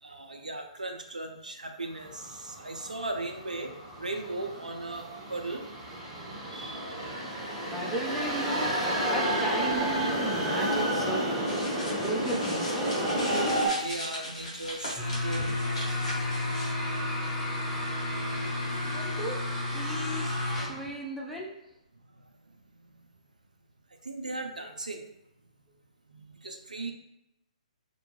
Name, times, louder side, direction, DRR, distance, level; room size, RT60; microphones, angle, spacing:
voice 1, 0.0-3.7 4.0-5.7 6.5-7.0 13.3-16.1 18.2-18.4 18.7-18.8 20.8-20.9 24.0-25.0 26.1-26.9, right 2 dB, 85° right, 3 dB, 0.4 m, -38 dB
sound 1, 2.0-13.7, right 1 dB, 20° right, 0.7 m, -31 dB
voice 2, 7.7-13.0 18.8-21.6, right 1 dB, ahead, -4 dB, 0.4 m, -36 dB
sound 2, 11.5-16.7, left 1 dB, 55° left, 1.0 m, -39 dB
sound 3, 15.0-20.9, left 1 dB, 15° left, 1.0 m, -31 dB
2.2 x 2.1 x 3.0 m, 0.84 s
figure-of-eight pair, 130°, 4 cm